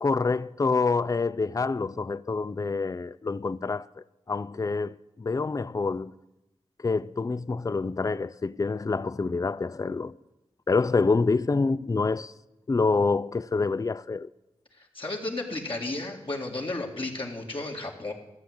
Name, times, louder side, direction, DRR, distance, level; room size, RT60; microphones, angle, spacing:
voice 1, 0.0-6.1 6.8-10.1 10.7-12.3 12.7-14.3, left 4 dB, 30° left, 0.4 m, -27 dB
voice 2, 14.7-18.1, left 2 dB, 50° left, 2.0 m, -33 dB
13.5 x 7.2 x 7.9 m
cardioid pair, 40°, 11 cm